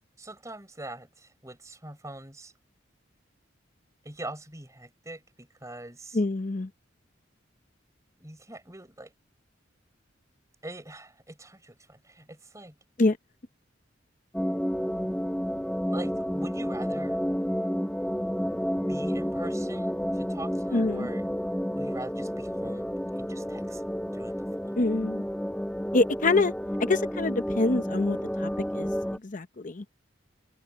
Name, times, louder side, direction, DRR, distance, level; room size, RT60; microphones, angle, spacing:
voice 1, 0.2-2.5 4.0-6.2 8.2-9.1 10.6-12.7 15.9-17.2 18.9-21.3 21.8-24.8, right 1 dB, 15° right, 4.8 m, -43 dB
voice 2, 6.1-6.7 13.0-13.2 20.7-21.1 24.8-25.2 25.9-26.5 26.9-28.9 29.2-29.8, left 2 dB, 40° left, 0.7 m, -26 dB
sound 1, 14.3-29.2, equal, 5° left, 1.2 m, -30 dB
open air
head